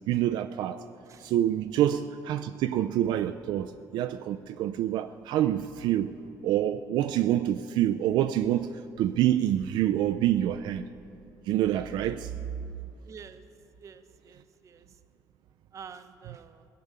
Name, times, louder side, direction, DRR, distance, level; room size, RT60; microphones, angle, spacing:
voice 1, 0.1-0.8 1.2-6.2 6.4-8.7 9.0-10.8 11.5-12.3, right 12 dB, 80° right, 0.4 m, -26 dB
voice 2, 13.0-13.4 13.8-14.9 15.7-16.6, right 6 dB, 40° right, 0.8 m, -48 dB
17.5 x 6.8 x 9.5 m
cardioid pair, 130°, 8 cm